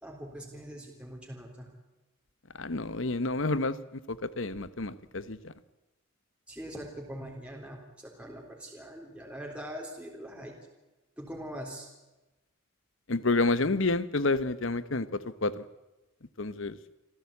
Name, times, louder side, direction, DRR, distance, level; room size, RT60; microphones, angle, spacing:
voice 1, 0.0-1.7 6.5-10.5 11.2-11.9, equal, 5° right, -1 dB, 3.5 m, -42 dB
voice 2, 2.6-3.7 4.1-5.4 13.1-15.1 15.4-15.6 16.4-16.7, left 3 dB, 65° left, 15 dB, 1.0 m, -29 dB
26.5 x 15.0 x 8.6 m, 1.0 s
head